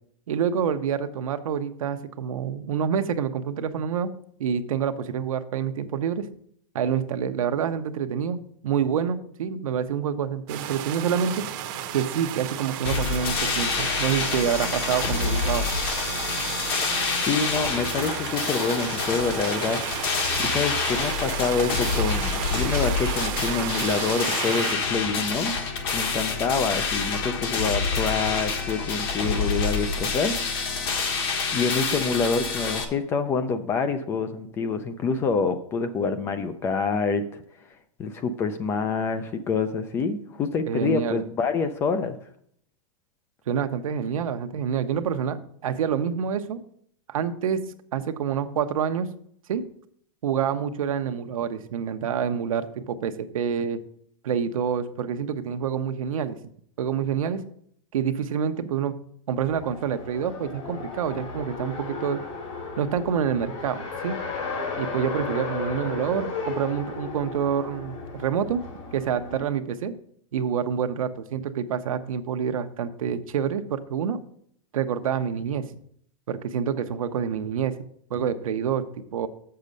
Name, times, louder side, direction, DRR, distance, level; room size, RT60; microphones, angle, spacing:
voice 1, 0.3-4.1 4.4-6.3 6.7-8.4 8.6-11.4 11.9-15.7 40.7-41.2 43.5-46.6 47.1-47.6 47.9-49.1 49.5-49.6 50.2-53.8 54.2-56.4 56.8-57.4 57.9-59.0 59.3-62.2 62.8-64.2 64.8-68.6 68.9-69.9 70.3-74.2 74.7-75.7 76.3-77.8 78.1-79.3, right 8 dB, 80° right, 8 dB, 0.8 m, -27 dB
sound 1, 10.5-24.7, right 10 dB, 35° right, 0.8 m, -33 dB
sound 2, 12.8-32.8, left 5 dB, 45° left, 1.3 m, -27 dB
voice 2, 17.2-19.8 20.4-25.5 25.9-30.3 31.5-37.4 38.0-42.2, left 4 dB, 15° left, 11 dB, 0.3 m, -26 dB
Race car auto racing, 59.4-69.4, left 4 dB, 60° left, 3.1 m, -35 dB
7.2 x 6.7 x 5.3 m, 0.66 s
supercardioid pair, 160°, 17 cm